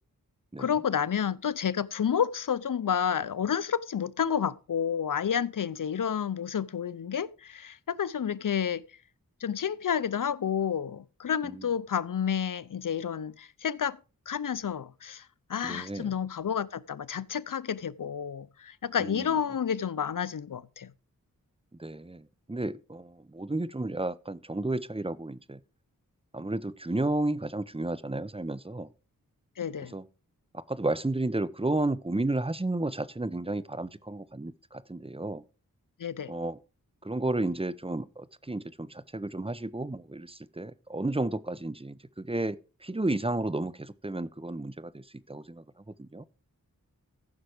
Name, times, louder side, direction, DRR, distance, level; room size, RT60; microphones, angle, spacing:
voice 1, 0.6-8.8 9.4-14.0 14.3-20.9 29.6-29.9 36.0-36.3, left 8 dB, 65° left, 0.7 m, -30 dB
voice 2, 15.6-16.1 19.0-19.3 21.8-25.6 26.3-28.9 29.9-30.1 30.7-35.4 36.3-36.6 37.0-45.6 46.0-46.2, right 2 dB, 15° right, 0.9 m, -32 dB
14.5 x 6.0 x 5.1 m
cardioid pair, 45°, 34 cm